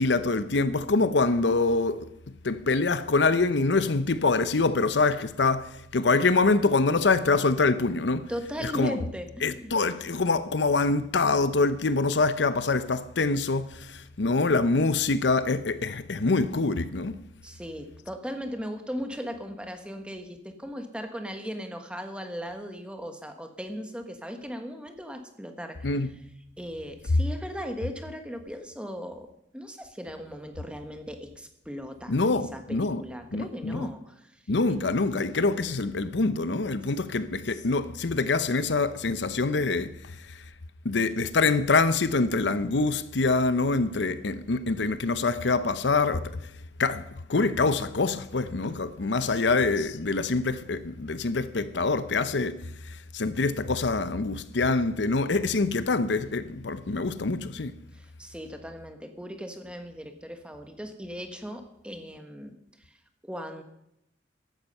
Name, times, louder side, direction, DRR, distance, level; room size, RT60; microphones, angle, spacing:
voice 1, 0.0-2.1 2.4-8.3 8.6-9.0 9.4-17.2 25.8-26.1 32.1-33.0 33.3-33.9 34.5-40.4 40.8-46.4 46.8-52.6 52.8-57.8, left 3 dB, 80° left, 0.7 m, -25 dB
voice 2, 8.3-9.7 17.4-25.9 26.6-29.3 29.5-34.4 34.7-34.8 49.2-49.4 57.9-62.5 63.2-63.6, equal, 5° right, 1.4 m, -38 dB
15.0 x 11.5 x 5.5 m
head